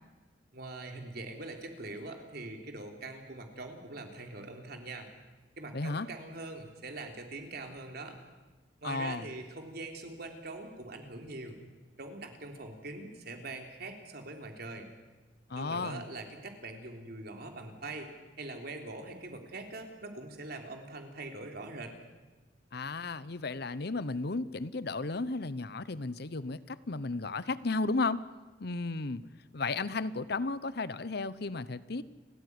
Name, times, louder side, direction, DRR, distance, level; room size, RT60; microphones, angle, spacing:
voice 1, 0.5-5.1 5.6-8.2 8.8-11.6 12.0-14.9 15.6-18.1 18.4-21.9, right 2 dB, 60° right, 3 dB, 3.5 m, -43 dB
voice 2, 5.7-6.1 8.8-9.2 15.5-16.1 22.7-28.2 28.6-29.2 29.5-32.0, left 3 dB, 60° left, 16 dB, 0.9 m, -34 dB
30.0 x 14.5 x 9.7 m, 1.2 s
head